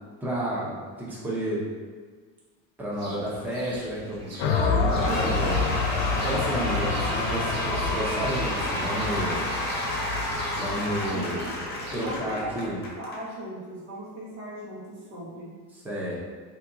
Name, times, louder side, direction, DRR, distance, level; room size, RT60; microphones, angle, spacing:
voice 1, 0.2-1.7 2.8-5.6 6.1-9.4 10.5-11.5 11.9-12.8 15.7-16.2, right 1 dB, 5° right, -6 dB, 0.5 m, -31 dB
sound 1, 2.9-12.2, right 1 dB, 40° right, 0.7 m, -43 dB
sound 2, 4.4-12.7, left 5 dB, 70° left, 0.5 m, -30 dB
Cheering / Applause / Crowd, 4.5-13.2, left 1 dB, 25° left, 0.8 m, -30 dB
voice 2, 12.0-12.7 12.9-15.5, right 1 dB, 80° right, -6 dB, 1.4 m, -38 dB
3.5 x 2.8 x 2.5 m, 1.5 s
cardioid pair, 135°, 40 cm